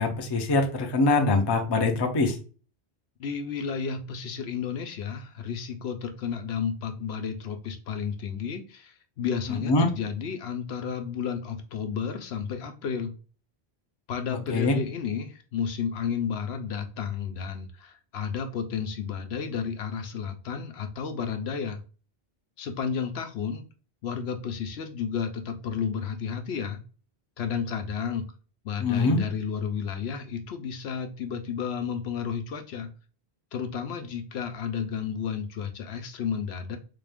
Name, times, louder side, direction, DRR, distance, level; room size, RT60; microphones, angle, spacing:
voice 1, 0.0-2.4 9.5-9.9 14.5-14.8 28.8-29.2, left 3 dB, 30° left, 4 dB, 0.5 m, -23 dB
voice 2, 3.2-13.1 14.1-21.8 22.6-23.6 24.0-26.8 27.4-28.2 28.6-32.9 33.5-36.8, left 7 dB, 75° left, 6 dB, 0.9 m, -32 dB
3.8 x 2.4 x 3.5 m, 0.37 s
omnidirectional pair, 1.1 m